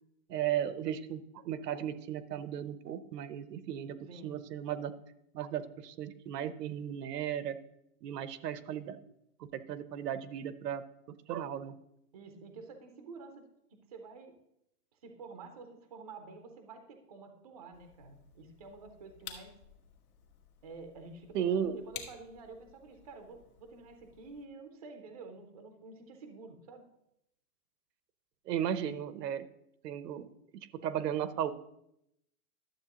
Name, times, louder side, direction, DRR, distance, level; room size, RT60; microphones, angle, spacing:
voice 1, 0.3-4.0 4.2-4.9 5.3-7.6 8.0-9.0 9.4-10.8 11.3-11.7 21.3-21.8 28.5-29.5 29.8-30.3 30.5-31.5, right 9 dB, 90° right, 14 dB, 0.8 m, -35 dB
voice 2, 12.1-13.4 13.9-14.3 15.0-19.5 20.6-26.9, right 4 dB, 25° right, 6 dB, 0.4 m, -49 dB
sound 1, 17.7-24.5, left 8 dB, 65° left, 1.6 m, -53 dB
11.5 x 7.5 x 2.9 m, 0.81 s
supercardioid pair, 175°, 47 cm